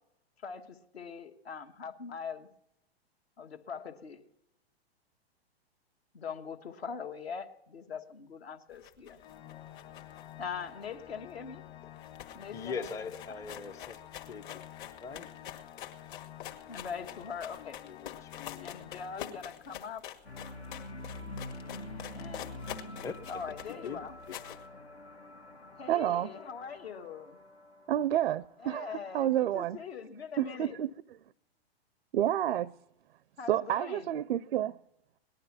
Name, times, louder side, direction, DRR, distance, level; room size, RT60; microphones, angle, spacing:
voice 1, 0.4-2.5 3.4-4.2 6.1-9.2 10.4-11.6 12.3-13.5 16.7-17.8 18.6-20.0 22.1-22.5 23.3-24.1 25.8-27.4 28.6-30.8 33.4-34.0, left 6 dB, 70° left, 1.5 m, -42 dB
sound 1, 8.7-11.4 11.7-11.8 12.0-24.7, left 11 dB, 50° left, 1.6 m, -46 dB
Organ, 9.2-20.1, left 11 dB, 35° left, 1.3 m, -51 dB
voice 2, 12.5-14.0 14.3-14.7 15.0-15.3 17.6-18.8 23.0-23.2 23.7-24.4, left 5 dB, 10° left, 0.5 m, -41 dB
sound 2, 20.2-28.5, left 2 dB, 90° left, 1.6 m, -46 dB
voice 3, 25.9-26.3 27.9-29.8 30.4-31.2 32.1-32.7 33.5-34.8, right 12 dB, 65° right, 0.5 m, -29 dB
18.5 x 11.5 x 5.9 m
figure-of-eight pair, 110°, 32 cm